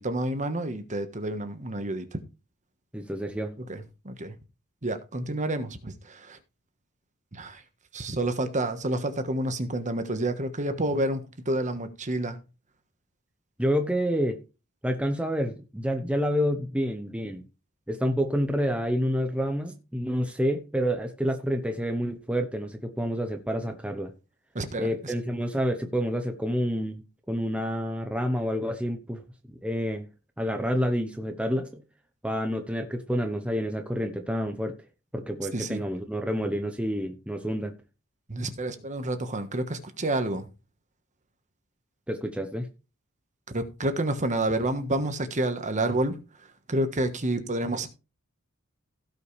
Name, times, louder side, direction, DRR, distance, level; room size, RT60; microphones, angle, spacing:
voice 1, 0.0-2.2 3.6-4.3 4.8-6.4 7.3-7.6 7.9-12.4 24.5-25.1 35.5-35.8 38.3-40.5 43.5-46.2 46.7-47.9, right 1 dB, 35° right, 1.3 m, -29 dB
voice 2, 2.9-3.5 13.6-14.4 14.8-17.4 17.9-24.1 24.8-27.0 27.3-29.2 29.6-30.1 30.4-31.8 32.2-34.7 35.1-37.7 42.1-42.7, equal, 5° right, 0.9 m, -28 dB
16.5 x 5.7 x 3.3 m
head